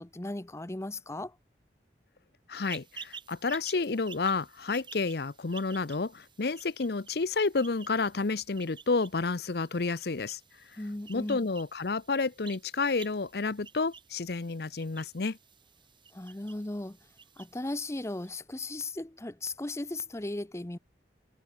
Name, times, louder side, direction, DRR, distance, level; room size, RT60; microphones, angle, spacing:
voice 1, 0.0-1.4 10.8-11.4 16.1-17.0 17.4-20.8, left 2 dB, 15° left, 0.7 m, -36 dB
voice 2, 2.5-10.4 10.7-10.8 11.1-15.4, left 4 dB, 60° left, 0.7 m, -30 dB
sound 1, 2.6-18.3, right 6 dB, 25° right, 4.1 m, -52 dB
head